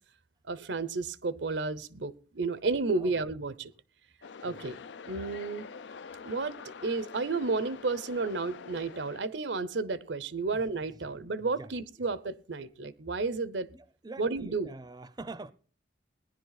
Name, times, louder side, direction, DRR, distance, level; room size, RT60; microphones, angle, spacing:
voice 1, 0.5-3.7 4.4-4.8 5.1-5.7 6.2-6.5 6.8-13.7 14.2-14.7, right 3 dB, 90° right, 0.8 m, -32 dB
sound 1, 4.2-9.2, left 5 dB, 85° left, 0.5 m, -46 dB
voice 2, 11.4-11.7 12.0-12.1 13.7-15.5, right 2 dB, 25° right, 0.5 m, -45 dB
18.0 x 10.5 x 4.0 m
head